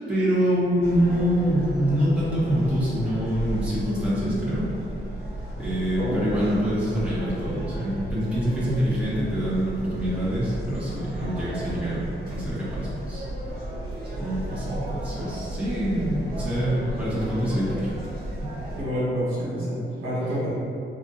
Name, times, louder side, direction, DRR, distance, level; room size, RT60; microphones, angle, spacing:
voice 1, 0.1-4.7 5.6-13.2 14.2-18.0 18.4-18.7, equal, 5° right, -10 dB, 1.1 m, -25 dB
sound 1, 0.8-18.8, right 1 dB, 45° right, 1.2 m, -34 dB
voice 2, 18.8-20.5, equal, 85° right, -8 dB, 1.4 m, -27 dB
5.1 x 2.4 x 2.6 m, 2.5 s
wide cardioid pair, 130°, 21 cm